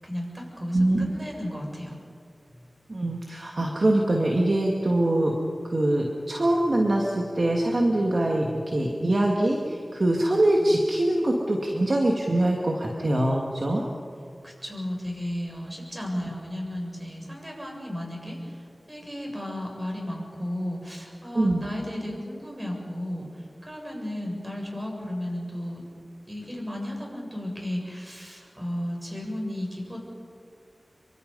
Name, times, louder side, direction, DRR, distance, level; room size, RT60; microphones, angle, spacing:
voice 1, 0.0-1.9 14.4-25.8 26.3-30.0, left 1 dB, 20° right, 0 dB, 7.4 m, -34 dB
voice 2, 0.7-1.1 2.9-5.4 5.6-13.8 16.2-16.3 21.3-21.6, right 1 dB, 55° right, 0 dB, 2.3 m, -23 dB
27.5 x 24.5 x 5.6 m, 2.3 s
wide cardioid pair, 55°, 0 cm